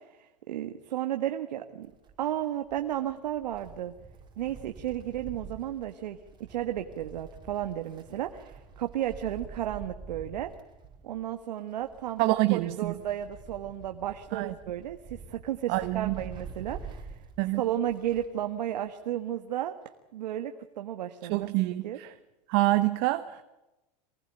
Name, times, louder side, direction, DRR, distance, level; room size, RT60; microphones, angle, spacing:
voice 1, 0.0-1.9 2.2-3.9 4.4-6.2 6.5-10.5 11.0-17.2 17.6-19.7 20.1-21.5 21.8-22.0, right 11 dB, 85° right, 7 dB, 1.6 m, -33 dB
Wind, 1.8-18.4 18.7-18.8 19.8-19.9, right 5 dB, 20° right, 6.2 m, -47 dB
voice 2, 12.2-12.9 14.3-14.5 15.7-16.2 17.4-17.6 21.3-22.1 22.5-23.4, right 18 dB, 55° right, 10 dB, 1.4 m, -26 dB
24.5 x 19.5 x 9.1 m, 0.98 s
hypercardioid pair, 115°, 21 cm